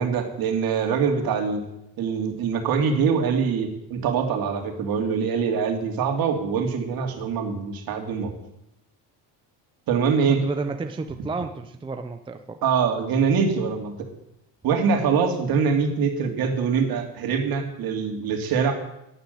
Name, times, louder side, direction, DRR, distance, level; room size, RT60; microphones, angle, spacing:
voice 1, 0.0-1.6 2.0-8.3 9.9-10.5 12.6-13.9 14.6-18.7, right 6 dB, 55° right, 3 dB, 3.1 m, -24 dB
voice 2, 10.3-12.6, right 3 dB, 10° right, 6 dB, 0.6 m, -31 dB
12.5 x 10.5 x 9.4 m, 0.84 s
cardioid pair, 160°, 43 cm